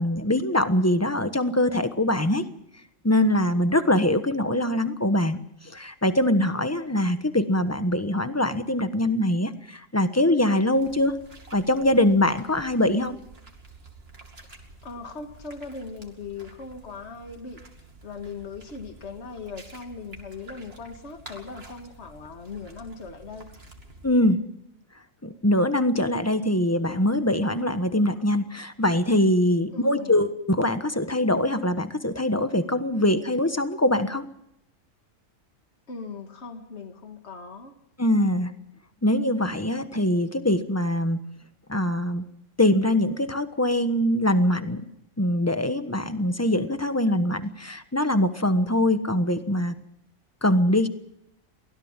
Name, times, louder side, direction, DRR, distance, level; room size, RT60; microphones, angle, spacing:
voice 1, 0.0-2.4 3.0-5.4 5.6-11.1 11.5-13.2 24.0-24.4 25.2-34.2 38.0-38.5 39.0-41.2 41.7-42.2 42.6-44.8 45.2-49.7 50.4-50.9, left 1 dB, 10° left, 9 dB, 1.2 m, -23 dB
sound 1, 10.7-24.2, right 2 dB, 50° right, 2.7 m, -49 dB
voice 2, 14.8-17.6 18.0-23.5 29.7-30.2 35.9-37.7, left 4 dB, 55° left, 5 dB, 2.2 m, -39 dB
23.5 x 16.5 x 7.4 m, 0.78 s
omnidirectional pair, 1.4 m